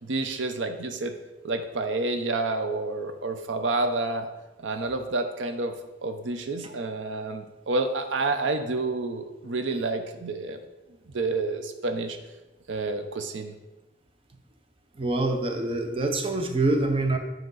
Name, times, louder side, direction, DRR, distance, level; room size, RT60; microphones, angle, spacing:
voice 1, 0.0-1.1 1.4-4.3 4.6-5.7 6.0-10.6 11.1-12.2 12.7-13.5, right 3 dB, 90° right, 7 dB, 0.6 m, -29 dB
voice 2, 15.0-17.2, right 2 dB, 30° right, 5 dB, 0.7 m, -25 dB
7.7 x 5.2 x 3.9 m, 1.0 s
head